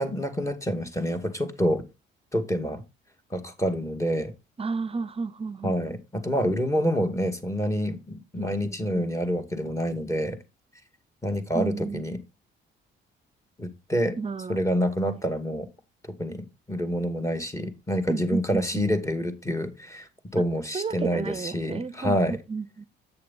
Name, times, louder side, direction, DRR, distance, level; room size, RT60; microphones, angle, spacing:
voice 1, 0.0-1.8 2.3-2.8 3.3-4.3 5.6-10.4 11.2-12.2 13.6-14.2 14.5-15.7 16.2-22.4, equal, 15° left, 2.0 m, -27 dB
voice 2, 4.6-5.8 8.4-8.5 8.9-9.0 11.5-12.0 14.2-14.6 15.1-15.2 18.1-18.8 20.7-22.2 22.5-22.9, right 4 dB, 30° right, 0.6 m, -32 dB
8.4 x 6.6 x 4.2 m
cardioid pair, 90°, 20 cm